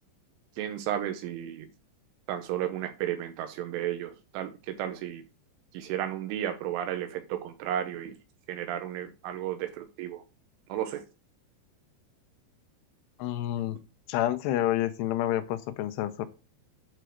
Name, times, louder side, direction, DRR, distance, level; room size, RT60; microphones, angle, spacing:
voice 1, 0.6-1.7 2.3-5.2 5.7-8.1 8.5-10.2 10.7-11.0, right 11 dB, 85° right, 3.3 m, -33 dB
voice 2, 13.2-13.8 14.1-16.3, left 13 dB, 80° left, 2.5 m, -28 dB
8.8 x 4.4 x 6.4 m
omnidirectional pair, 5.5 m